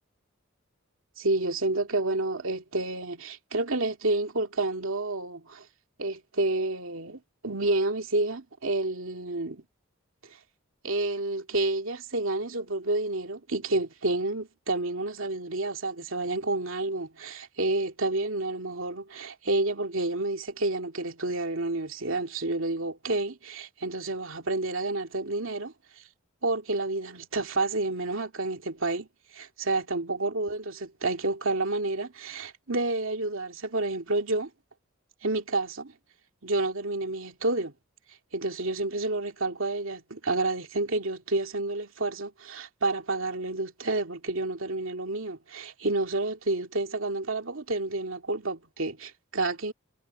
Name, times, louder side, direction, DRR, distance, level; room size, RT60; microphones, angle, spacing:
voice 1, 1.2-5.7 6.0-9.6 10.8-25.7 26.4-29.1 29.3-34.5 35.2-35.9 36.4-37.7 38.3-49.7, right 2 dB, 70° right, 2.5 m, -29 dB
head